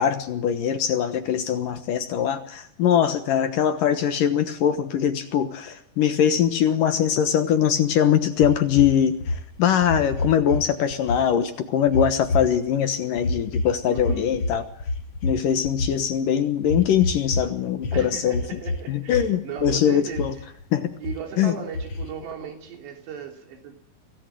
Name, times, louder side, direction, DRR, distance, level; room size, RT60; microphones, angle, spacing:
voice 1, 0.0-14.7 15.2-18.4 18.9-20.3 20.7-20.9 21.4-21.6, left 9 dB, 65° left, 9 dB, 2.4 m, -22 dB
sound 1, 8.4-10.6 10.9-11.2 11.9-12.7 13.2-16.1 16.6-17.5 17.8-18.8 19.1-19.8 20.1-20.6 21.0-21.2 21.7-22.3, left 2 dB, 40° left, 2.2 m, -28 dB
voice 2, 13.9-14.4 17.9-20.3 21.0-23.9, right 7 dB, 80° right, 4 dB, 5.5 m, -37 dB
24.0 x 17.5 x 7.7 m, 0.69 s
omnidirectional pair, 4.9 m